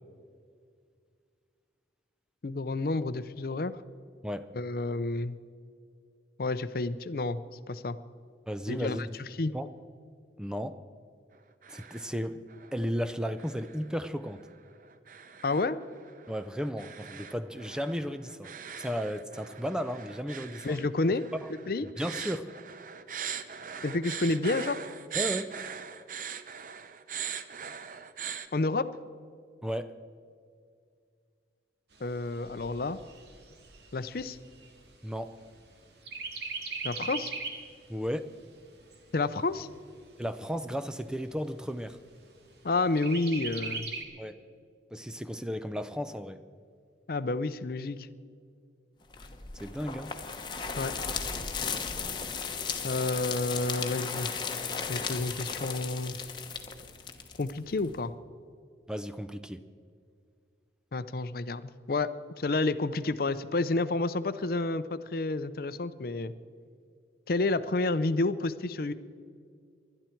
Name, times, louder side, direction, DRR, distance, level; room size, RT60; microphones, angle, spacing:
voice 1, 2.4-3.8 4.5-5.4 6.4-7.4 7.7-8.0 8.7-9.1 9.4-9.5 15.4-15.8 20.6-21.3 21.7-21.9 23.8-24.8 28.5-28.9 32.0-33.0 33.9-34.4 36.8-37.3 39.1-39.7 42.6-43.9 47.1-48.1 50.8-50.9 52.8-54.3 54.9-56.2 57.4-58.1 60.9-66.3 67.3-68.9, left 3 dB, 55° left, 14 dB, 0.5 m, -30 dB
voice 2, 4.2-4.5 8.5-9.1 9.5-9.7 10.4-10.8 11.7-12.4 12.7-14.5 16.3-18.5 18.8-20.8 21.4-21.5 22.0-22.5 25.1-25.6 29.6-30.0 35.0-35.4 37.9-38.3 40.2-42.0 44.2-44.4 44.9-46.4 49.5-50.2 58.9-59.6, equal, 5° right, 11 dB, 0.5 m, -34 dB
sound 1, 11.3-12.2 12.5-12.9 13.4-28.5, right 7 dB, 45° right, 0.7 m, -41 dB
Chirp tweet, 31.9-35.7 36.1-37.7 38.2-38.3 38.6-39.6 40.2-40.3 40.6-40.7 41.2-41.7 43.0-44.0, right 4 dB, 70° right, 2.0 m, -39 dB
sound 2, 49.1-58.0, left 5 dB, 25° left, 1.1 m, -36 dB
20.5 x 12.0 x 4.5 m, 2.2 s
head